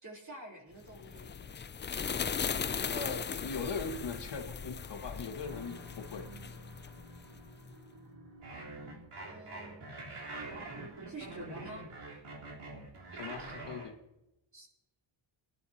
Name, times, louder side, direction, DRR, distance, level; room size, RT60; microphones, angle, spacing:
voice 1, 0.0-1.6 9.2-10.0 11.1-11.9 14.5-14.7, right 2 dB, 35° right, -1 dB, 3.4 m, -48 dB
sound 1, 0.9-7.5, left 6 dB, 25° left, 0.3 m, -38 dB
voice 2, 2.9-6.2 13.1-14.0, left 4 dB, 55° left, 4 dB, 1.5 m, -40 dB
sound 2, 3.6-9.1, right 1 dB, 65° right, 2.4 m, -54 dB
sound 3, 8.4-13.9, right 2 dB, 80° right, 3.7 m, -44 dB
20.5 x 11.0 x 2.8 m, 0.93 s
wide cardioid pair, 120°, 49 cm